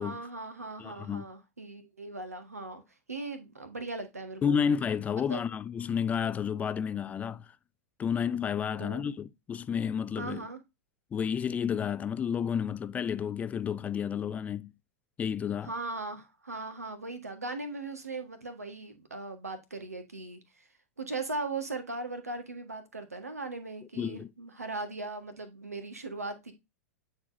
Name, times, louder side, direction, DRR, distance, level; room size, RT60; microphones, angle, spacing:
voice 1, 0.0-2.8 3.1-4.6 5.3-5.4 8.7-9.1 10.2-10.6 15.6-20.7 21.0-26.5, right 3 dB, 80° right, 1.5 m, -39 dB
voice 2, 0.8-1.2 4.4-7.5 8.0-10.5 11.1-14.7 15.2-15.7 24.0-24.3, left 7 dB, 20° left, 0.4 m, -31 dB
9.4 x 4.3 x 2.7 m
figure-of-eight pair, 95°, 8 cm